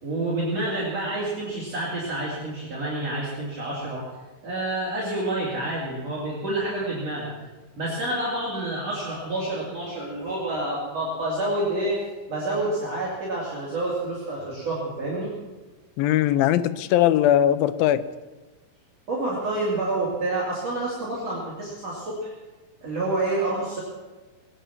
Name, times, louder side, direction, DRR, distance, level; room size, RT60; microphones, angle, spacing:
voice 1, 0.0-4.1 4.4-7.3 7.8-12.0 12.3-15.3 19.1-22.3 22.8-23.8, right 2 dB, 45° right, -7 dB, 3.9 m, -28 dB
voice 2, 16.0-18.1, left 12 dB, 90° left, 13 dB, 2.5 m, -20 dB
19.5 x 9.9 x 7.2 m, 1.2 s
omnidirectional pair, 4.1 m